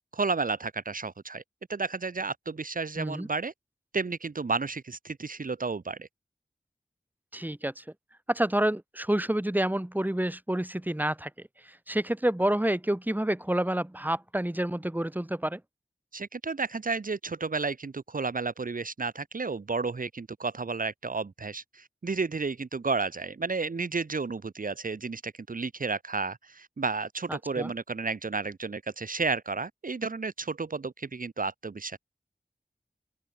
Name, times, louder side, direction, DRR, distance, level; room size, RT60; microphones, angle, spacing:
voice 1, 0.1-1.4 1.7-3.5 3.9-6.1 16.1-32.0, right 4 dB, 60° right, 1.2 m, -32 dB
voice 2, 3.0-3.3 7.3-7.8 8.3-11.3 11.7-15.6 27.3-27.7, right 1 dB, 10° right, 2.0 m, -28 dB
open air
wide cardioid pair, 50°, 16 cm